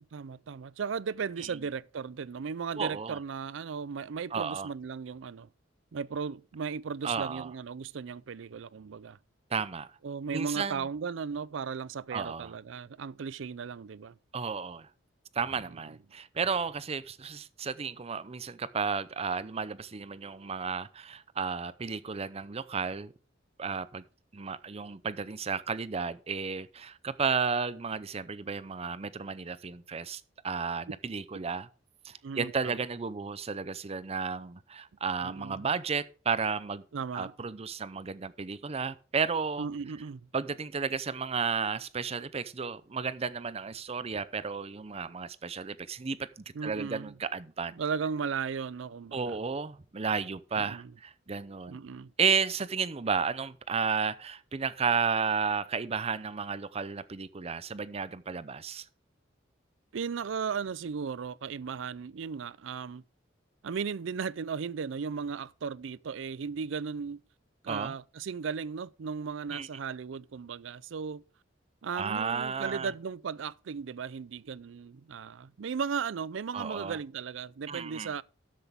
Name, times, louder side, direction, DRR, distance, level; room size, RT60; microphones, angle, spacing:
voice 1, 0.1-5.5 5.9-9.2 10.0-14.2 32.2-32.8 35.2-35.7 36.9-37.3 39.6-40.3 46.5-47.2 47.7-49.4 50.6-50.9 51.7-52.1 59.9-63.0 63.6-67.2 67.6-71.2 71.8-78.2, right 6 dB, 80° right, 0.4 m, -36 dB
voice 2, 2.8-3.2 4.3-4.7 7.0-7.5 9.5-9.9 10.3-10.8 12.1-12.5 14.3-14.9 15.3-23.1 23.6-24.0 24.3-31.7 32.0-36.8 37.1-39.7 40.3-47.8 49.1-51.8 52.2-58.9 67.7-67.9 69.5-69.7 71.9-72.9 76.5-77.0 77.7-78.1, right 5 dB, 35° right, 0.6 m, -33 dB
13.0 x 8.1 x 3.5 m
head